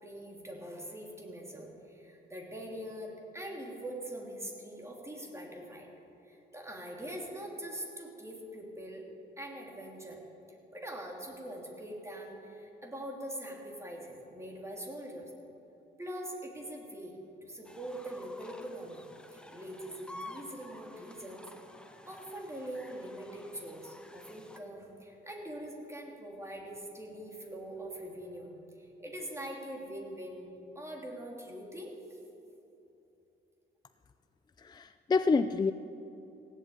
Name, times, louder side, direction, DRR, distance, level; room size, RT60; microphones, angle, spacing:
voice 1, 0.0-5.9 6.2-9.0 9.4-10.2 10.7-15.3 16.0-19.1 19.3-21.5 22.0-28.5 28.8-30.5 30.7-32.2, right 1 dB, 15° right, -1 dB, 3.1 m, -43 dB
sound 1, 17.6-24.6, left 1 dB, 5° left, 1.1 m, -51 dB
voice 2, 34.6-35.7, left 4 dB, 20° left, 10 dB, 0.4 m, -28 dB
16.5 x 8.2 x 8.8 m, 2.9 s
cardioid pair, 90°, 20 cm